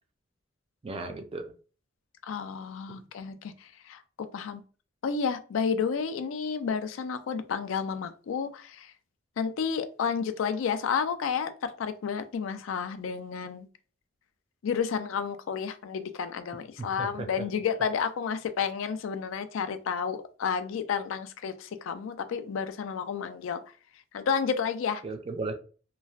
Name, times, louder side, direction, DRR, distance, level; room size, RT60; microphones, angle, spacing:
voice 1, 0.8-1.5 2.9-3.0 16.8-17.3 25.0-25.5, right 3 dB, 30° right, 0.4 m, -36 dB
voice 2, 2.3-4.6 5.0-8.9 9.4-13.7 14.6-23.6 24.1-25.0, left 6 dB, 80° left, 0.4 m, -31 dB
3.0 x 2.4 x 2.3 m
head